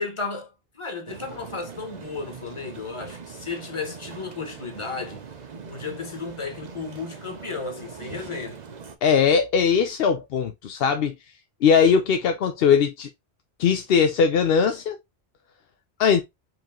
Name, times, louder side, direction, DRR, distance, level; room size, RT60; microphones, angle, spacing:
voice 1, 0.0-5.2 5.7-8.6, left 4 dB, 30° left, 1.2 m, -34 dB
sound 1, 1.1-9.0, right 5 dB, 45° right, 0.8 m, -41 dB
voice 2, 9.0-11.1 11.6-13.1 13.6-15.0 16.0-16.2, left 6 dB, 70° left, 0.8 m, -20 dB
4.8 x 3.0 x 3.6 m
omnidirectional pair, 1.1 m